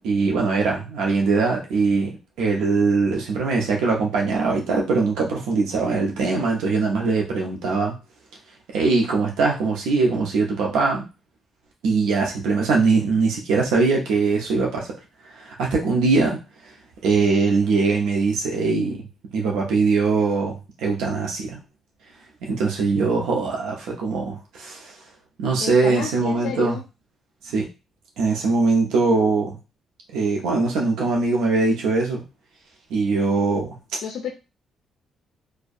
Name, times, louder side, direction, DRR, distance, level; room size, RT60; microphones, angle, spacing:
voice 1, 0.0-7.9 8.7-11.1 11.8-14.9 15.3-16.4 17.0-21.6 22.4-24.9 25.4-26.8 27.4-27.7 28.2-29.6 30.1-32.2 32.9-33.8, right 4 dB, 90° right, -1 dB, 0.6 m, -21 dB
voice 2, 25.6-26.8 34.0-34.3, left 7 dB, 85° left, 3 dB, 0.4 m, -30 dB
2.6 x 2.1 x 2.4 m, 0.29 s
cardioid pair, 90°, 0 cm